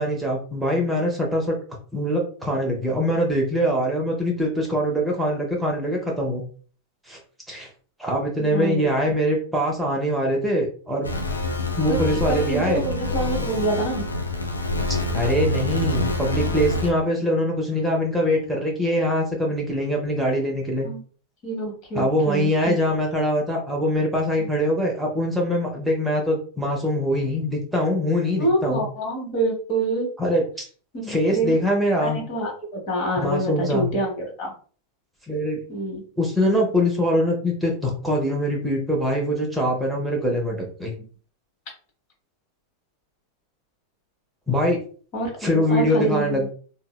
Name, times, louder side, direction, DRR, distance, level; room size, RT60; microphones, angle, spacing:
voice 1, 0.0-1.5 1.9-6.4 7.1-7.2 7.5-7.7 8.0-11.1 11.8-12.8 15.1-20.9 21.9-28.8 30.2-30.4 31.1-32.2 33.2-33.9 35.3-35.6 36.2-40.9 44.5-44.8 45.4-46.5, equal, 5° right, -2 dB, 0.7 m, -23 dB
voice 2, 8.4-8.9 11.9-14.1 20.8-21.0 21.4-22.7 28.4-30.1 30.9-31.6 32.0-34.5 35.7-36.0 45.1-46.5, right 2 dB, 45° left, 2 dB, 1.0 m, -26 dB
sound 1, 11.0-16.9, left 2 dB, 80° left, 0.4 m, -26 dB
3.8 x 2.0 x 2.2 m, 0.42 s
figure-of-eight pair, 90°, 0 cm